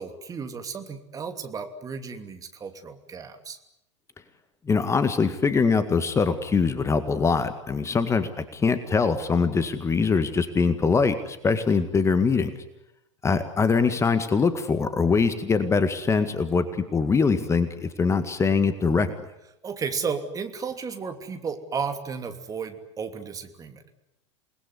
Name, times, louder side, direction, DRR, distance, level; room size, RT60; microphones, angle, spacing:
voice 1, 0.0-3.6 19.6-23.9, right 5 dB, 20° right, 7 dB, 2.9 m, -33 dB
voice 2, 4.7-12.5 13.2-19.1, left 5 dB, 20° left, 11 dB, 1.9 m, -23 dB
29.0 x 20.5 x 9.9 m, 0.86 s
figure-of-eight pair, 85°, 16 cm